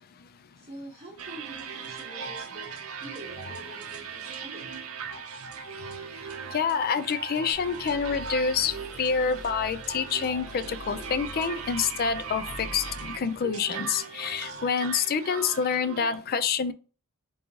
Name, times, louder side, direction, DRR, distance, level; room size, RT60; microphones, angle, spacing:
voice 1, 0.6-2.7 3.0-4.7, right 1 dB, 30° right, 1.3 m, -45 dB
sound 1, 1.2-16.2, right 6 dB, 75° right, 0.6 m, -39 dB
voice 2, 6.5-16.7, left 6 dB, 45° left, 0.4 m, -27 dB
sound 2, 7.5-14.0, left 1 dB, 5° left, 2.0 m, -45 dB
3.8 x 3.7 x 3.0 m
head